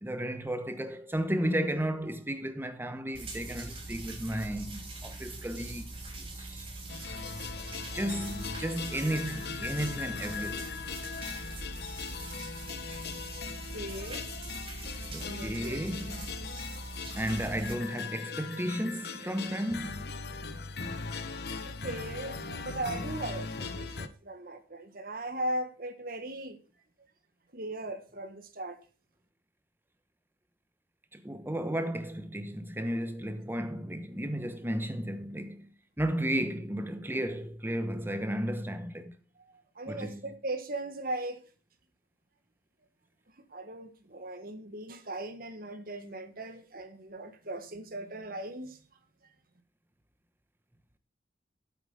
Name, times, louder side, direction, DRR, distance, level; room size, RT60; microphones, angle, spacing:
voice 1, 0.0-5.9 6.2-6.7 7.9-10.7 15.1-16.3 17.1-20.2 31.1-35.7 36.0-39.1 39.9-40.2, right 1 dB, 10° right, 1.1 m, -33 dB
sound 1, 3.1-17.7, right 2 dB, 30° right, 3.3 m, -42 dB
sound 2, 6.9-24.1, left 5 dB, 65° left, 1.0 m, -40 dB
voice 2, 13.7-14.2 15.2-15.8 21.8-26.6 27.5-28.8 39.4-41.4 43.5-48.8, right 1 dB, 55° right, 1.5 m, -38 dB
8.4 x 8.1 x 5.6 m
head